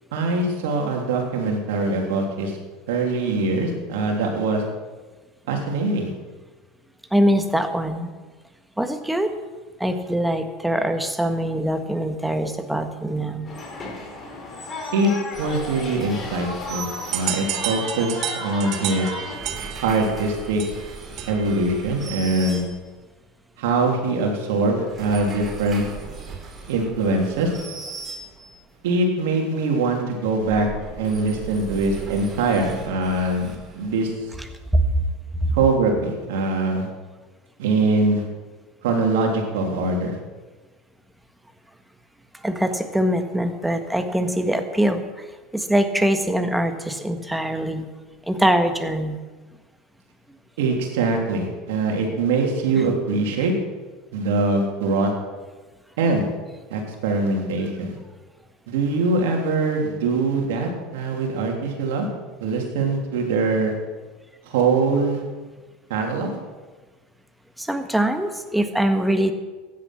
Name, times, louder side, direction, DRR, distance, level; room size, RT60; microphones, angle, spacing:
voice 1, 0.1-2.6 2.9-4.6 5.5-6.1 14.9-15.1 15.4-19.1 19.8-20.6 21.3-22.6 23.6-25.9 26.7-27.5 28.8-30.7 31.0-34.1 35.5-36.9 37.6-38.2 38.8-40.2 50.6-53.5 54.1-55.1 56.0-56.3 56.7-57.9 58.7-62.1 62.4-63.7 64.4-65.2 65.9-66.4, right 3 dB, 75° right, 1 dB, 3.2 m, -23 dB
voice 2, 7.1-8.1 8.8-9.3 9.8-13.5 34.7-34.8 35.4-35.5 42.4-45.1 45.5-47.9 48.3-49.2 67.6-69.3, right 1 dB, 5° right, 7 dB, 1.6 m, -23 dB
sound 1, 13.4-19.4, left 3 dB, 35° left, 4.4 m, -34 dB
sound 2, 15.3-17.9 19.1-23.2 24.7-28.7 30.2-34.4, right 4 dB, 30° right, 3.6 m, -38 dB
sound 3, 17.1-21.6, right 10 dB, 55° right, 1.2 m, -31 dB
15.0 x 10.5 x 6.0 m, 1.3 s
hypercardioid pair, 85°, 0 cm